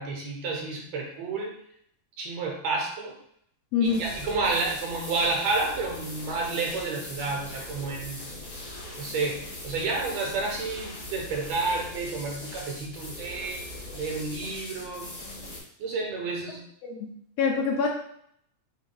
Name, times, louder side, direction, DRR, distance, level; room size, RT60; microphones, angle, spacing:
voice 1, 0.0-1.5 2.2-3.1 3.8-8.2 9.0-13.6 13.9-15.1 15.8-16.6, right 3 dB, 75° right, 0 dB, 1.8 m, -30 dB
voice 2, 3.7-4.1 16.8-17.1 17.4-17.9, left 5 dB, 75° left, -1 dB, 1.6 m, -25 dB
sound 1, 3.8-15.6, left 1 dB, 50° left, 0.9 m, -40 dB
6.3 x 3.5 x 2.3 m, 0.68 s
omnidirectional pair, 3.3 m